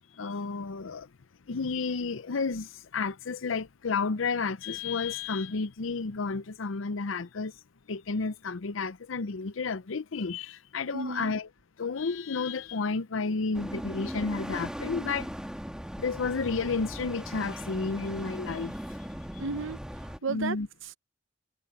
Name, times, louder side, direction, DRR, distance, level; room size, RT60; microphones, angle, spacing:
voice 1, 0.1-1.1 1.5-7.6 7.9-11.5 11.8-15.3 16.0-18.8 20.3-20.7, left 4 dB, 80° left, 0.6 m, -31 dB
voice 2, 10.9-11.3 19.4-20.6 20.8-20.9, right 4 dB, 75° right, 0.9 m, -34 dB
sound 1, 13.5-20.2, equal, 5° right, 1.9 m, -38 dB
head